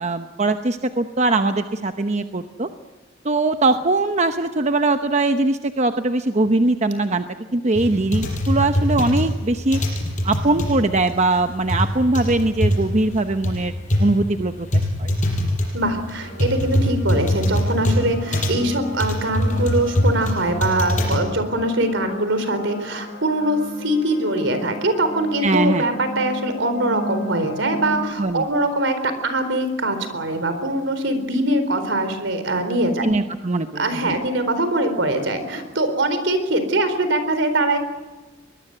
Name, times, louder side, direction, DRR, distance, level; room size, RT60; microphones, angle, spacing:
voice 1, 0.0-2.7 3.2-7.2 7.5-9.8 10.2-13.7 14.0-15.1 25.4-25.9 28.2-28.4 33.0-34.2, right 2 dB, 35° right, 8 dB, 0.9 m, -21 dB
sound 1, 7.7-21.2, left 1 dB, 40° left, 6.5 m, -22 dB
voice 2, 15.7-33.0 33.8-37.8, right 1 dB, 70° right, 9 dB, 4.2 m, -22 dB
sound 2, 16.2-28.1, left 1 dB, 70° left, 5.1 m, -35 dB
23.5 x 20.5 x 8.0 m, 1.2 s
head